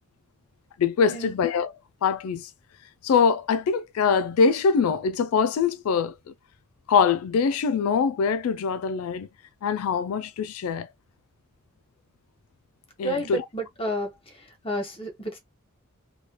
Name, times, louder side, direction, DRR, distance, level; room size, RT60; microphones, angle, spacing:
voice 1, 0.8-1.7 2.0-2.5 3.0-6.1 6.9-9.3 9.6-10.9 13.0-13.4, left 6 dB, 85° left, 0.3 m, -23 dB
voice 2, 13.0-14.1 14.6-15.4, equal, 25° left, 1.2 m, -30 dB
3.1 x 2.2 x 2.9 m
head